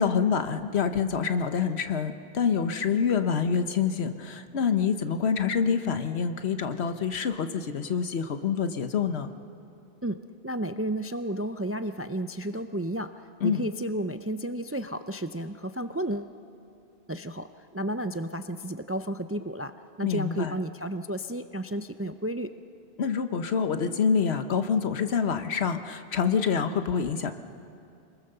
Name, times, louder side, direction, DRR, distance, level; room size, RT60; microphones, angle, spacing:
voice 1, 0.0-9.3 13.4-13.7 20.0-20.5 23.0-27.3, left 6 dB, 85° left, 9 dB, 1.2 m, -26 dB
voice 2, 10.0-13.1 13.4-16.3 17.1-19.7 20.0-22.5, right 1 dB, 25° right, 9 dB, 0.3 m, -32 dB
27.0 x 20.5 x 6.8 m, 2.6 s
omnidirectional pair, 1.1 m